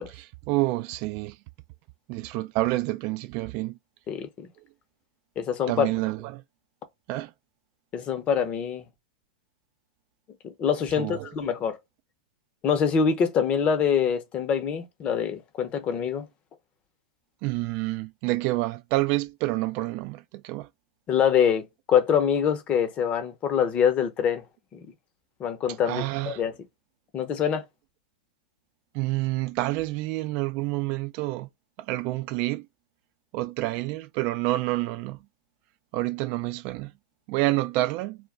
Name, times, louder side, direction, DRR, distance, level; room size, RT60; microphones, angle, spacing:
voice 1, 0.1-1.3 2.1-3.8 5.7-6.4 7.1-7.3 11.0-11.3 17.4-20.7 25.8-26.4 28.9-31.5 31.9-32.7 33.3-35.2 35.9-36.9 37.3-38.2, right 19 dB, 45° right, 0.3 m, -28 dB
voice 2, 4.1-4.5 5.4-5.9 7.9-8.8 10.6-11.8 12.6-16.3 21.1-21.6 21.9-24.4 24.7-24.9 25.4-26.5 27.1-27.6, left 7 dB, 30° left, 0.7 m, -24 dB
2.2 x 2.2 x 3.6 m
hypercardioid pair, 110°, 4 cm